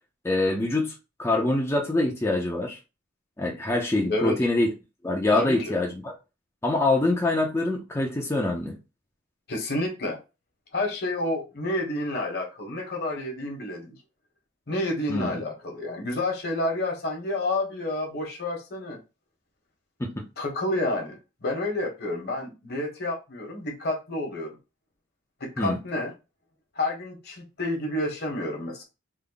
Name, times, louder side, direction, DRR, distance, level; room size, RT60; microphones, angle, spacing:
voice 1, 0.2-0.9 1.2-2.8 3.4-4.7 5.0-6.1 6.6-8.8 15.1-15.4 20.0-20.1 25.6-25.8, left 2 dB, 15° left, 0.5 m, -25 dB
voice 2, 5.3-5.7 9.5-10.2 10.7-13.9 14.7-19.0 20.4-24.6 25.4-26.1 26.7-28.8, left 1 dB, 55° left, 1.1 m, -29 dB
3.4 x 2.1 x 3.8 m
head